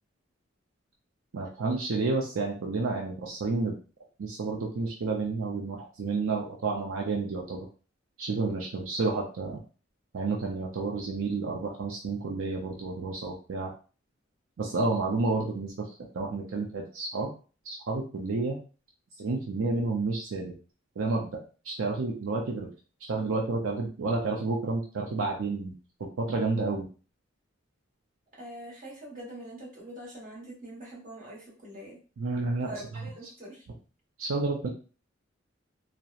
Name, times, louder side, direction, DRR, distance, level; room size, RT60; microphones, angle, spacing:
voice 1, 1.3-3.7 4.2-7.7 8.2-9.6 10.1-13.7 14.6-15.7 16.1-17.3 17.7-18.6 19.2-20.5 21.0-21.3 21.6-22.7 23.0-25.7 26.2-26.9 32.2-32.7 34.2-34.7, right 3 dB, 80° right, -1 dB, 0.5 m, -30 dB
voice 2, 28.4-32.0 32.6-33.7, right 1 dB, 40° right, -4 dB, 1.1 m, -44 dB
2.8 x 2.0 x 2.4 m, 0.36 s
head